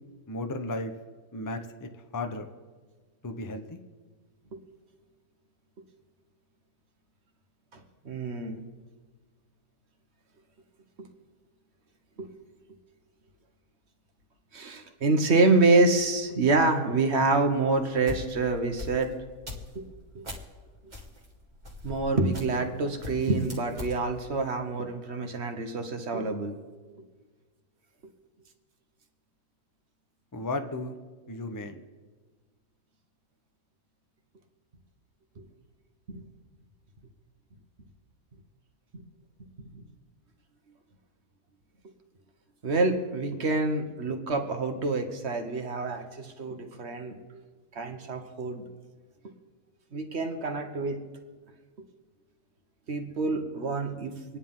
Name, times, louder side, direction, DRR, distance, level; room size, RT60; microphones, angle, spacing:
voice 1, 0.3-0.9 1.3-2.5 3.2-3.8 30.3-31.0 31.3-31.8, left 2 dB, 30° left, 6 dB, 0.3 m, -34 dB
voice 2, 7.7-8.6 11.0-11.1 12.2-12.3 14.5-19.1 19.7-19.8 20.1-20.2 20.8-20.9 21.8-26.6 35.4-35.5 36.1-36.2 39.7-39.8 42.6-47.4 47.7-48.6 49.9-51.0 52.9-54.4, right 3 dB, 40° right, 5 dB, 1.4 m, -27 dB
sound 1, 17.7-20.5 20.9-22.7 23.0-24.0, left 2 dB, 25° right, 1.8 m, -40 dB
26.0 x 10.0 x 3.7 m, 1.4 s
omnidirectional pair, 1.9 m